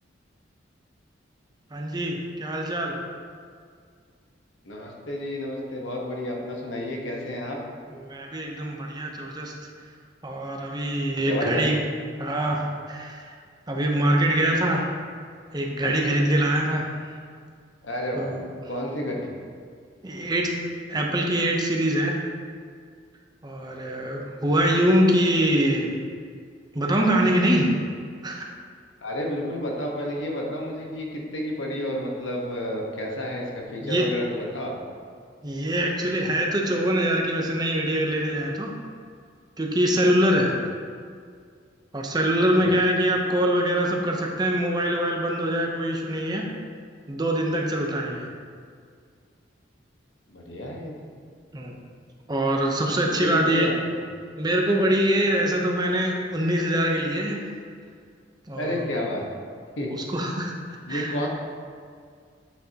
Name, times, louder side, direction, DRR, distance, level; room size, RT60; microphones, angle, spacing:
voice 1, 1.7-3.0 7.9-9.5 10.2-11.8 12.2-13.3 13.7-15.0 15.5-16.9 18.1-18.5 20.0-20.5 20.9-22.2 23.4-25.9 26.7-27.7 28.2-28.5 33.8-34.1 35.4-38.7 39.6-40.6 41.9-46.5 47.1-48.3 51.5-51.8 52.3-53.7 54.4-57.4 58.5-58.9 59.9-60.5 60.9-61.1, right 1 dB, 20° right, 0 dB, 0.8 m, -24 dB
voice 2, 4.6-7.6 11.2-11.6 16.1-16.3 17.8-18.4 18.7-19.3 29.0-34.8 40.5-40.6 42.4-42.8 50.3-51.1 53.2-54.0 58.5-59.3 59.8-59.9 60.9-61.3, equal, 90° left, -1 dB, 1.2 m, -31 dB
8.1 x 6.7 x 2.9 m, 2.1 s
head